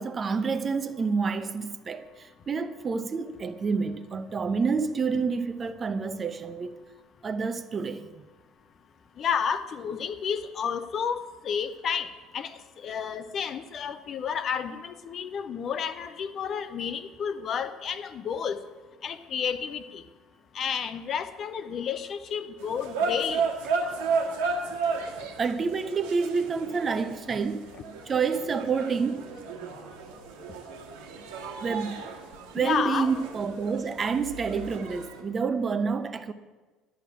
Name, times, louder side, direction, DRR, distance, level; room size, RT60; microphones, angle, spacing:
voice 1, 0.0-6.7 7.2-8.3 24.6-24.8 25.4-27.8 28.0-29.3 31.6-32.1 32.5-36.3, right 5 dB, 30° right, 0.8 m, -28 dB
voice 2, 9.2-18.6 19.0-20.0 20.5-23.4 32.6-33.1, left 7 dB, 40° left, 0.7 m, -31 dB
sound 1, 22.6-35.2, right 4 dB, 65° right, 1.6 m, -34 dB
10.5 x 6.6 x 8.8 m
figure-of-eight pair, 60°, 0 cm